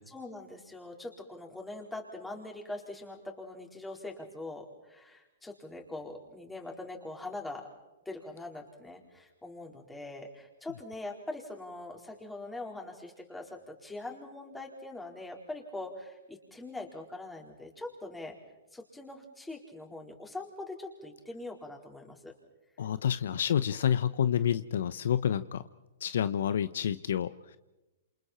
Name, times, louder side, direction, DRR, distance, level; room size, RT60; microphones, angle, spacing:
voice 1, 0.1-7.7 8.0-18.4 18.7-22.3, left 2 dB, 5° left, 1 dB, 4.3 m, -42 dB
voice 2, 22.8-25.6 26.0-27.6, left 9 dB, 70° left, 14 dB, 0.8 m, -29 dB
28.5 x 28.0 x 4.4 m, 1.1 s
hypercardioid pair, 130°, 0 cm